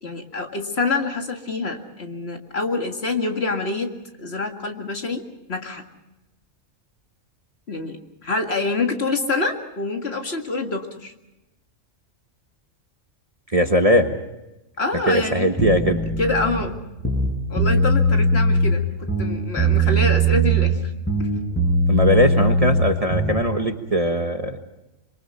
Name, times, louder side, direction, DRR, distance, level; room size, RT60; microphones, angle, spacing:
voice 1, 0.0-3.9 4.2-5.2 5.5-5.8 7.7-8.0 8.2-11.1 14.8-15.5 16.2-16.8 17.5-20.9 21.2-21.3, left 3 dB, 50° left, 4 dB, 2.2 m, -26 dB
voice 2, 13.5-14.2 15.1-16.1 21.9-24.6, equal, 30° right, 5 dB, 1.3 m, -20 dB
sound 1, 15.6-16.6 17.0-18.8 19.1-20.8 21.1-23.5, right 1 dB, 10° left, 5.3 m, -20 dB
25.5 x 24.0 x 5.6 m, 0.96 s
omnidirectional pair, 1.4 m